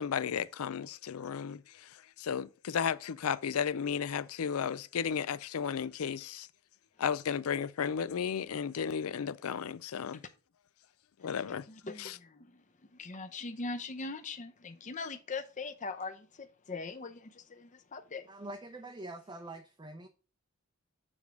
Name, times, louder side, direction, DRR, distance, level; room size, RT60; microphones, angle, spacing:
voice 1, 0.0-6.5 7.0-10.2 11.2-11.7 12.0-12.2, left 7 dB, 90° left, 0.4 m, -34 dB
voice 2, 11.5-12.6 12.9-18.3, left 3 dB, 35° left, 0.7 m, -41 dB
voice 3, 18.3-20.1, right 2 dB, 20° right, 0.5 m, -44 dB
7.1 x 3.5 x 6.1 m
head